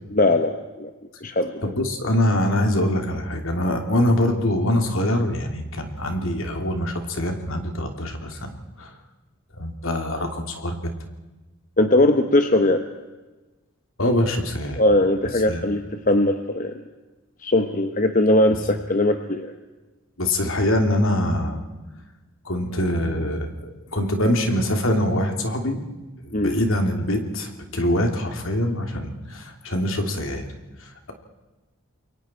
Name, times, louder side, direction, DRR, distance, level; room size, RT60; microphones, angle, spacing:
voice 1, 0.1-0.9 1.2-1.7 11.8-12.8 14.8-16.8 17.4-19.5 26.3-26.5, left 1 dB, 40° left, 7 dB, 1.0 m, -20 dB
voice 2, 1.6-8.9 9.6-10.9 14.0-14.8 15.5-15.6 20.2-21.6 22.4-25.8 26.2-30.5 30.8-31.1, left 1 dB, 65° left, 4 dB, 3.0 m, -24 dB
28.5 x 23.0 x 4.5 m, 1.2 s
head